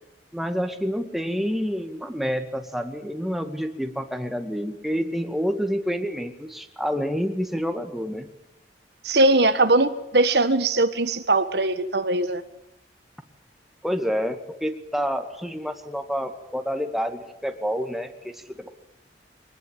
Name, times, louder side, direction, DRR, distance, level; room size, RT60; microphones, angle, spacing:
voice 1, 0.3-8.3 13.8-18.7, equal, ahead, 6 dB, 2.0 m, -28 dB
voice 2, 9.0-12.4, right 2 dB, 70° right, 10 dB, 1.5 m, -20 dB
24.0 x 20.5 x 9.2 m, 0.82 s
head